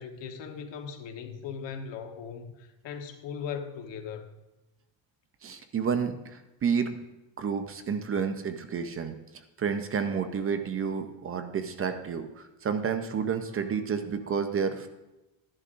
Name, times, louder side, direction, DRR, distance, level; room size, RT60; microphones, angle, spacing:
voice 1, 0.0-4.3, left 6 dB, 70° left, 1.2 m, -39 dB
voice 2, 5.4-7.0 7.4-9.2 9.6-14.9, right 6 dB, 30° right, 0.5 m, -30 dB
12.5 x 10.5 x 2.5 m
cardioid pair, 155°, 45 cm